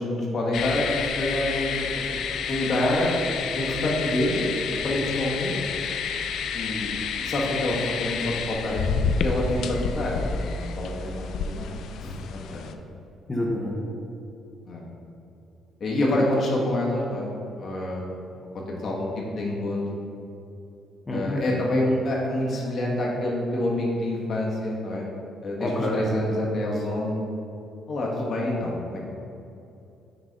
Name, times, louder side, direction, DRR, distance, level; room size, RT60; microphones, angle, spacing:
voice 1, 0.0-2.0 2.5-3.1 3.5-5.5 6.5-11.7 12.0-12.7 14.7-14.8 15.8-18.0 18.5-19.8 21.1-25.1 25.4-27.2 27.9-29.0, left 1 dB, 45° left, -3 dB, 1.3 m, -27 dB
sound 1, 0.5-12.7, left 6 dB, 65° left, 0.3 m, -30 dB
voice 2, 13.3-13.8 21.1-21.4 25.6-26.0, left 1 dB, 20° left, -3 dB, 0.9 m, -27 dB
6.2 x 4.0 x 5.2 m, 2.8 s
cardioid pair, 125°, 0 cm